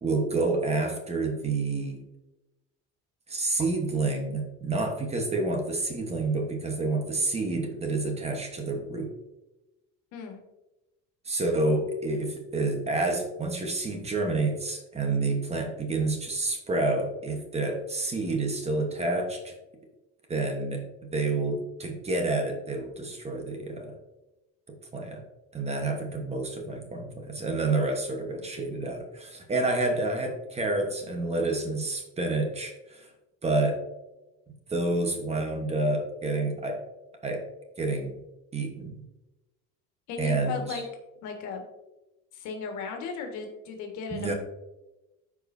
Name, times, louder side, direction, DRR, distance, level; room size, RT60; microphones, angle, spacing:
voice 1, 0.0-2.0 3.3-9.1 11.2-19.5 20.3-23.9 24.9-25.2 25.5-33.1 33.4-33.8 34.7-36.8 37.2-37.4 37.8-38.2 38.5-39.0 40.2-40.8 44.1-44.3, right 2 dB, 20° right, 3 dB, 1.1 m, -29 dB
voice 2, 40.1-40.8 41.2-41.6 42.3-44.3, left 5 dB, 70° left, 3 dB, 1.7 m, -36 dB
14.0 x 4.8 x 2.7 m, 1.0 s
cardioid pair, 150°, 30 cm